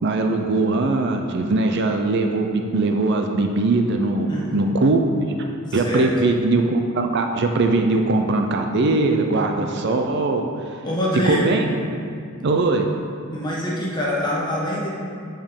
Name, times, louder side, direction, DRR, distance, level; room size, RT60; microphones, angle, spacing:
voice 1, 0.0-5.0 5.4-10.8 11.2-11.8 12.4-12.9, right 2 dB, 50° right, 4 dB, 0.5 m, -21 dB
voice 2, 4.3-4.8 5.7-6.1 10.8-11.5 13.3-14.9, equal, 20° left, -5 dB, 1.4 m, -25 dB
7.3 x 5.1 x 5.3 m, 2.3 s
head